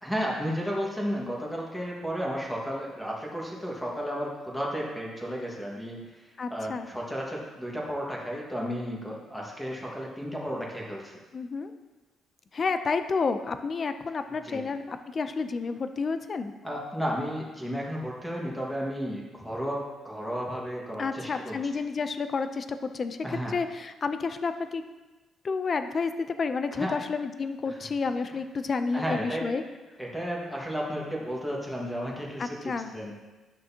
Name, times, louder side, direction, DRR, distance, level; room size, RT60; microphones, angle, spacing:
voice 1, 0.0-11.2 14.4-14.7 16.6-21.7 23.2-23.6 26.7-27.0 27.7-27.8 28.3-28.4 28.9-29.5 30.0-33.1, equal, 5° left, -3 dB, 1.7 m, -33 dB
voice 2, 6.4-6.9 11.3-11.7 12.5-16.5 21.0-23.2 23.5-24.8 25.4-29.6 32.4-32.9, left 4 dB, 40° left, 9 dB, 0.5 m, -30 dB
11.0 x 6.2 x 2.9 m, 1.2 s
cardioid pair, 110°, 0 cm